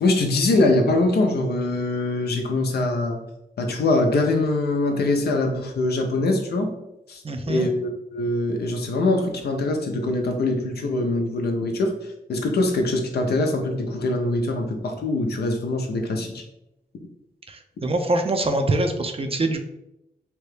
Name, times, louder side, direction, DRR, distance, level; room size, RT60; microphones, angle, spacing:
voice 1, 0.0-3.2 3.6-6.7 7.1-11.9 12.3-16.4, left 2 dB, 80° left, 3 dB, 0.6 m, -23 dB
voice 2, 7.2-7.7 17.5-19.6, right 2 dB, 35° right, 5 dB, 0.5 m, -24 dB
2.9 x 2.2 x 3.2 m, 0.86 s
cardioid pair, 50°, 16 cm